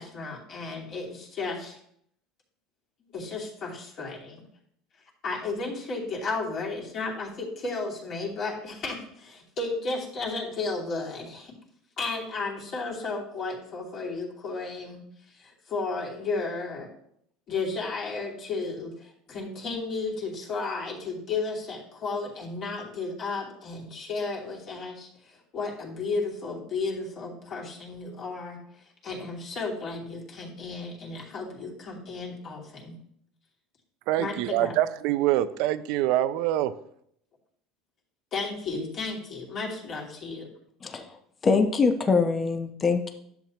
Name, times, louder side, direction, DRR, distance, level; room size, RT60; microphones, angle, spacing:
voice 1, 0.0-1.8 3.0-4.4 5.2-11.5 12.0-16.9 17.5-28.6 29.0-33.0 34.2-34.8 38.3-40.5, left 3 dB, 45° left, 2.6 m, -33 dB
voice 2, 34.1-36.7, right 13 dB, 70° right, 0.5 m, -25 dB
voice 3, 40.8-41.2 41.4-43.1, left 4 dB, 30° left, 0.8 m, -23 dB
10.5 x 7.1 x 3.0 m
supercardioid pair, 110°, 0 cm